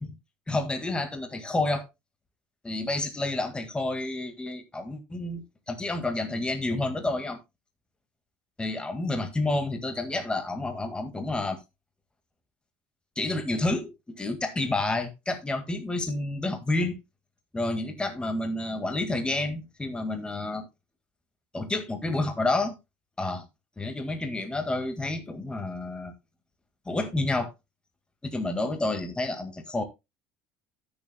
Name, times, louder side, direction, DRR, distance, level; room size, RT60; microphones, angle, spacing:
voice 1, 0.5-1.9 2.6-7.4 8.6-11.6 13.2-17.0 17.5-20.7 21.5-22.7 23.2-23.5 23.8-26.1 26.9-27.5 28.2-29.8, left 2 dB, 15° left, 1.8 m, -29 dB
16.5 x 7.1 x 2.2 m
supercardioid pair, 90°, 6 cm